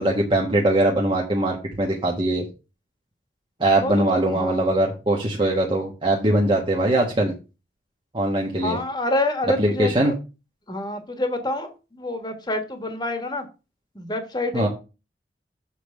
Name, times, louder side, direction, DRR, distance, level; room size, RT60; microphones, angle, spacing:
voice 1, 0.0-2.4 3.6-7.3 8.1-8.8 9.6-10.1 14.5-14.7, right 1 dB, 30° right, -1 dB, 1.3 m, -21 dB
voice 2, 3.8-4.8 8.6-10.1 10.7-13.4 13.9-14.7, left 1 dB, 25° left, 6 dB, 1.3 m, -27 dB
7.5 x 3.4 x 6.1 m, 0.30 s
head